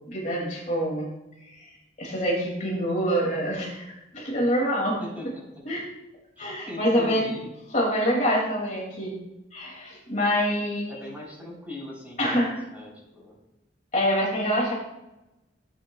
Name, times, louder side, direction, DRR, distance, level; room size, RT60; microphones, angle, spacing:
voice 1, 0.1-1.1 1.5-1.7 2.0-3.8 4.1-5.0 5.7-5.8 6.4-7.3 7.7-9.1 9.5-10.9 12.2-12.6 13.9-14.7, equal, 40° left, -2 dB, 2.5 m, -25 dB
voice 2, 5.0-5.6 6.4-7.5 10.9-13.4, left 1 dB, 10° right, -4 dB, 3.8 m, -40 dB
16.0 x 8.8 x 2.3 m, 0.97 s
head